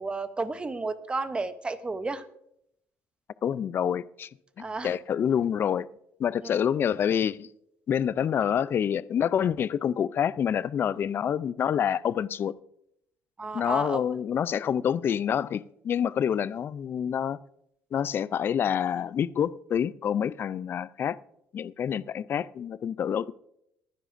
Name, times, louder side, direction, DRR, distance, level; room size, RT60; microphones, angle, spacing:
voice 1, 0.0-2.3 4.6-4.9 6.4-6.5 13.4-14.0, right 3 dB, 20° right, 0.7 m, -32 dB
voice 2, 3.4-4.3 4.6-5.9 6.2-7.5 7.9-12.5 13.5-17.4 17.9-21.2 21.5-23.3, left 8 dB, 45° left, 0.4 m, -27 dB
23.0 x 10.0 x 2.6 m
cardioid pair, 110°, 5 cm